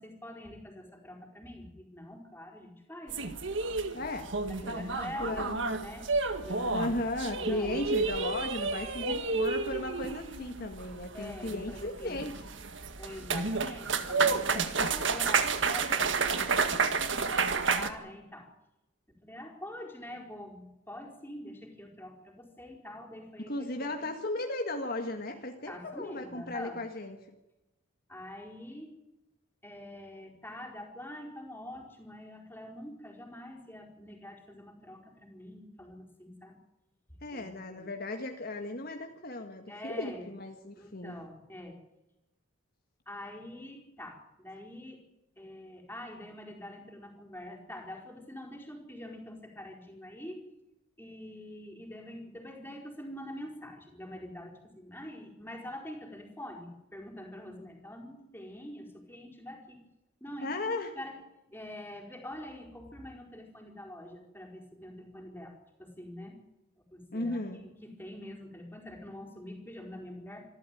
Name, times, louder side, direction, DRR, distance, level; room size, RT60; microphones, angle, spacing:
voice 1, 0.0-3.3 4.5-6.1 6.4-6.9 7.3-7.8 8.7-9.4 11.1-12.2 13.0-18.5 19.2-24.1 25.7-26.8 28.1-28.9 29.6-36.6 37.1-37.9 39.7-40.3 40.8-41.8 43.1-45.0 45.4-50.5 51.0-59.8 60.2-60.5 60.9-61.2 61.5-66.3 66.8-70.5, left 1 dB, 10° left, 1 dB, 4.6 m, -45 dB
sound 1, 3.1-17.9, right 4 dB, 65° right, 1.8 m, -31 dB
voice 2, 3.9-4.3 4.6-5.6 6.7-12.4 23.5-27.2 37.2-41.2 60.4-60.9 67.1-67.6, left 2 dB, 45° left, 4 dB, 1.7 m, -36 dB
26.0 x 13.0 x 9.2 m, 0.95 s
head